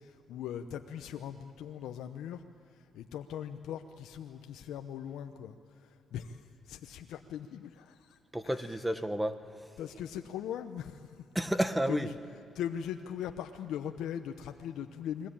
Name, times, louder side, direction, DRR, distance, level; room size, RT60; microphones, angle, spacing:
voice 1, 0.0-2.4 2.7-8.8 9.8-11.3 11.9-12.2 12.5-15.3, left 9 dB, 85° left, 0.8 m, -40 dB
voice 2, 8.3-9.6 11.3-12.1, right 1 dB, 10° right, 1.3 m, -31 dB
29.5 x 21.5 x 8.7 m
cardioid pair, 90°, 0 cm